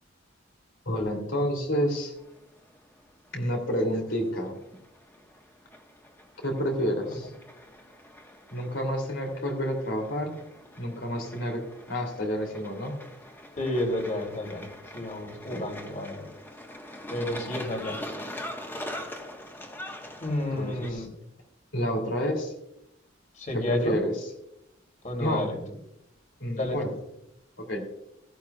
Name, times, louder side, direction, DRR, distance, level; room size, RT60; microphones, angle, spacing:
voice 1, 0.9-2.1 3.3-4.6 6.4-7.3 8.5-10.4 10.8-13.0 15.5-15.9 20.5-21.1 21.7-22.5 23.5-24.3 25.2-25.5 26.4-26.9 27.6-27.8, equal, 70° left, 2 dB, 2.9 m, -29 dB
sound 1, 2.2-20.9, left 1 dB, 10° left, 1.3 m, -43 dB
voice 2, 13.6-14.7 14.9-16.2 17.1-18.0 20.2-21.1 23.4-24.0 25.0-25.6 26.6-26.9, left 1 dB, 40° left, 2 dB, 3.0 m, -31 dB
15.5 x 11.5 x 2.3 m, 0.83 s
head